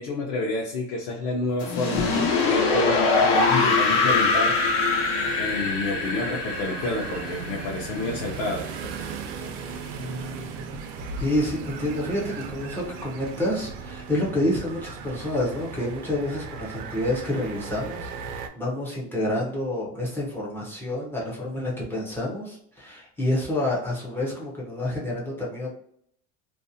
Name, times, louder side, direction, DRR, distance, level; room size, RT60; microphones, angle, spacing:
voice 1, 0.0-2.1 2.4-4.5 5.3-8.9, left 2 dB, 50° left, -2 dB, 0.6 m, -29 dB
sound 1, 1.6-8.5, left 3 dB, 80° left, 0.9 m, -23 dB
sound 2, 2.0-18.5, right 5 dB, 70° right, 0.5 m, -38 dB
voice 2, 10.0-10.8 11.2-25.7, left 1 dB, 5° left, -5 dB, 0.4 m, -28 dB
2.5 x 2.0 x 2.6 m, 0.68 s
cardioid pair, 165°, 36 cm